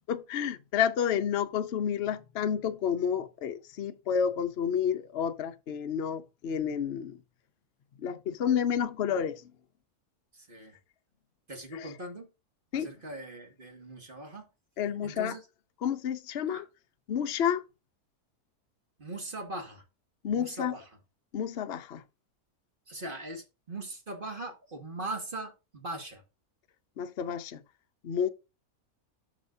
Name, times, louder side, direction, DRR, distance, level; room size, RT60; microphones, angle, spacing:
voice 1, 0.1-7.2 8.0-9.4 11.7-11.9 12.7-12.9 14.8-15.4 15.8-16.7 17.1-17.6 20.2-20.7 21.3-22.0 27.0-27.6 28.0-28.3, left 8 dB, 55° left, 0.8 m, -30 dB
voice 2, 10.3-10.8 11.5-12.3 12.7-14.5 15.0-15.4 16.5-16.6 19.0-19.8 20.3-20.9 22.9-26.2, right 2 dB, 35° right, 2.0 m, -40 dB
12.5 x 5.2 x 2.7 m
omnidirectional pair, 1.6 m